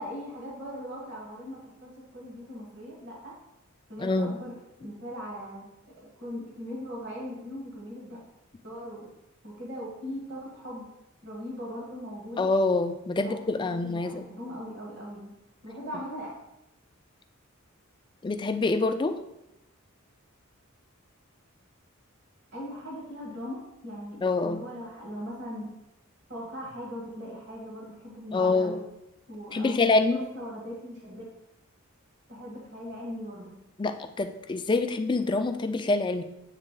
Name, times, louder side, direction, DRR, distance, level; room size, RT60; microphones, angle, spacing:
voice 1, 0.0-3.3 3.9-5.7 6.0-8.2 8.6-9.1 9.4-10.9 11.2-12.5 13.2-15.3 15.6-16.3 22.5-25.7 26.3-28.8 29.3-29.8 30.1-31.2 32.3-33.6, equal, 55° right, -4 dB, 1.7 m, -39 dB
voice 2, 4.0-4.4 12.4-14.2 18.2-19.2 24.2-24.6 28.3-28.8 29.5-30.2 33.8-36.2, left 3 dB, 20° left, 8 dB, 0.3 m, -26 dB
7.3 x 3.4 x 3.8 m, 0.89 s
head